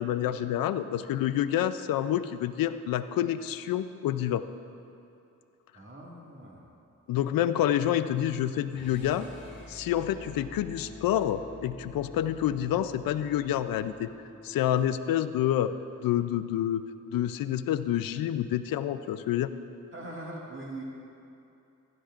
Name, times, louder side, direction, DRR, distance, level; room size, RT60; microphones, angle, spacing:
voice 1, 0.0-4.5 7.1-9.3 9.7-14.1 14.4-15.7 16.0-16.8 17.1-19.5, left 11 dB, 90° left, 13 dB, 0.5 m, -28 dB
voice 2, 5.7-6.7 19.9-20.8, right 2 dB, 35° right, -3 dB, 2.0 m, -41 dB
sound 1, 8.7-14.8, equal, 35° left, 2.4 m, -48 dB
15.5 x 12.0 x 2.5 m, 2.7 s
cardioid pair, 50°, 33 cm